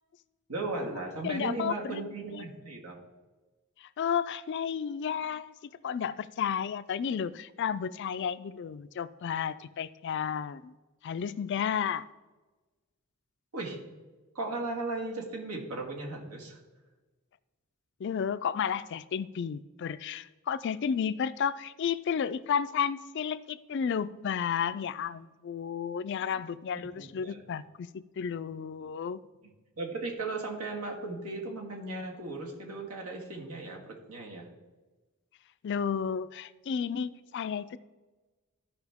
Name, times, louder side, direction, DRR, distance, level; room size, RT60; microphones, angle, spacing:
voice 1, 0.5-3.0 13.5-13.8 14.4-16.6 27.0-27.4 29.8-34.5, right 2 dB, 85° right, 1 dB, 1.9 m, -36 dB
voice 2, 1.2-2.0 2.3-2.4 3.8-10.7 11.0-12.1 18.0-29.2 35.6-37.8, left 7 dB, 55° left, 15 dB, 0.3 m, -32 dB
14.0 x 5.3 x 3.5 m, 1.2 s
head